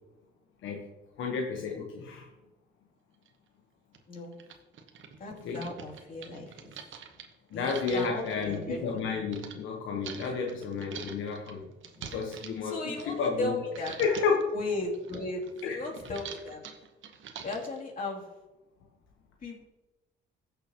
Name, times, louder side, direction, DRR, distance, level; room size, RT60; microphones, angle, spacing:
voice 1, 1.2-2.3 5.4-5.7 7.5-11.7 12.1-13.5 14.0-14.5 15.6-15.8, left 5 dB, 80° left, 1 dB, 1.1 m, -31 dB
sound 1, 3.3-3.4 3.9-4.0 4.3-9.6 10.0-13.5 13.7-14.4 14.8-17.8, right 7 dB, 75° right, 1.1 m, -45 dB
voice 2, 5.2-6.7 7.5-7.7 7.9-8.8 12.6-14.0 14.5-16.6 17.4-18.3 19.4-19.7, left 2 dB, 45° left, -2 dB, 2.8 m, -36 dB
15.5 x 6.9 x 2.9 m, 1.1 s
cardioid pair, 90°, 20 cm